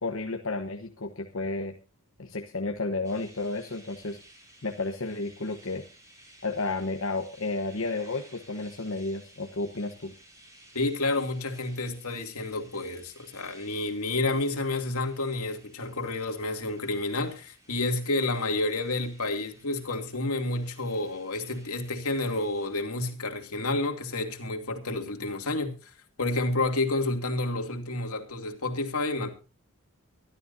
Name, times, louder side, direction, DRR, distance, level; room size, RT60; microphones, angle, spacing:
voice 1, 0.0-1.7 2.2-4.2 4.6-5.9 6.4-10.1, left 3 dB, 60° left, 1.1 m, -32 dB
sound 1, 3.0-22.7, right 1 dB, 15° right, 6.1 m, -56 dB
voice 2, 10.7-25.9 26.2-29.3, left 2 dB, 80° left, 2.5 m, -30 dB
24.0 x 12.5 x 2.7 m
head